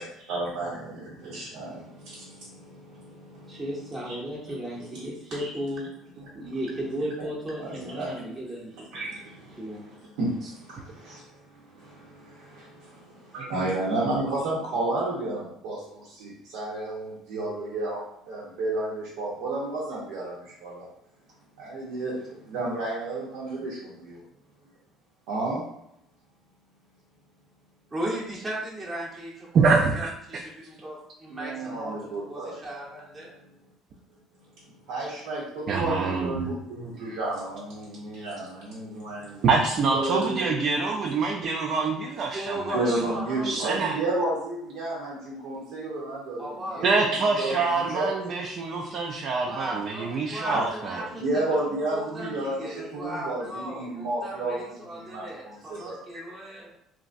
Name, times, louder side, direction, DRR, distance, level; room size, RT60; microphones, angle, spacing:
voice 1, 0.0-4.2 4.4-5.0 6.2-6.6 7.6-8.3 8.9-20.9 21.6-24.2 25.3-25.6 31.3-32.6 33.3-33.5 34.3-39.5 39.9-40.5 40.7-40.8 42.7-46.9 47.3-48.1 50.5-50.7 50.9-56.2, right 2 dB, 80° right, -6 dB, 0.7 m, -32 dB
voice 2, 3.5-5.8 6.3-8.9 9.6-9.8 27.9-29.7 30.0-30.1 30.4-33.3 42.3-43.5 46.4-47.1 49.4-51.2 51.5-51.6 51.9-56.7, right 1 dB, 20° right, -4 dB, 0.8 m, -35 dB
voice 3, 29.5-30.4 35.7-36.4 39.4-42.7 43.4-43.9 46.8-51.0, right 4 dB, 50° right, -1 dB, 0.4 m, -25 dB
3.0 x 2.4 x 2.5 m, 0.78 s
supercardioid pair, 95°, 0 cm